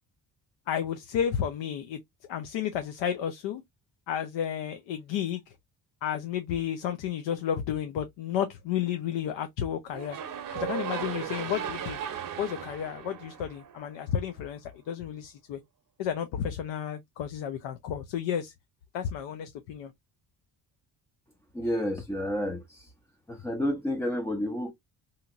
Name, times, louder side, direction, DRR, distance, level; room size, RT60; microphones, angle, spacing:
voice 1, 0.7-2.0 2.3-3.6 4.1-5.4 6.0-10.2 10.5-12.0 12.4-15.6 16.0-18.5 18.9-19.9, left 9 dB, 70° left, 0.6 m, -32 dB
sound 1, 9.9-14.1, right 8 dB, 45° right, 0.7 m, -36 dB
voice 2, 21.5-22.9 23.3-24.7, left 1 dB, 5° left, 0.4 m, -30 dB
2.8 x 2.8 x 2.3 m
supercardioid pair, 65°, 47 cm